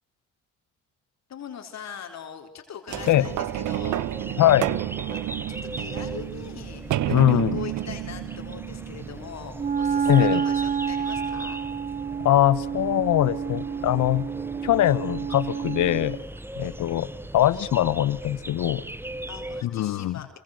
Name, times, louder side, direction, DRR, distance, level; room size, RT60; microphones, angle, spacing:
voice 1, 1.3-4.1 5.1-11.6 15.5-15.7 16.6-16.8 19.3-20.3, left 8 dB, 60° left, 4 dB, 4.0 m, -41 dB
sound 1, 2.9-19.6, right 1 dB, 5° right, 1.1 m, -39 dB
sound 2, 2.9-9.6 10.3-10.4, right 15 dB, 80° right, 0.9 m, -30 dB
voice 2, 4.4-4.7 7.1-7.6 10.0-10.4 12.2-14.3 14.6-16.2 16.6-18.8 19.6-20.2, left 13 dB, 75° left, 17 dB, 1.3 m, -22 dB
Wind instrument woodwind instrument, 9.5-16.2, right 7 dB, 30° right, 1.0 m, -29 dB
27.0 x 24.0 x 6.6 m, 0.88 s
cardioid pair, 90°, 30 cm